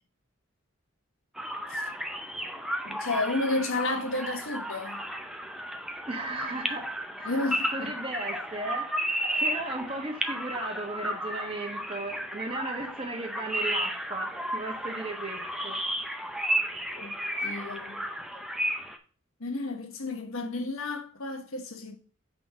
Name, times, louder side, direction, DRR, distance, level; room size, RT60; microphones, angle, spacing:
sound 1, 1.4-19.0, equal, ahead, 0.5 m, -33 dB
voice 1, 2.8-5.0 7.2-7.9 16.9-18.0 19.4-22.0, left 2 dB, 80° left, 1.2 m, -32 dB
voice 2, 6.1-7.4 7.7-15.8, right 2 dB, 25° right, 1.2 m, -36 dB
5.5 x 4.0 x 6.0 m
head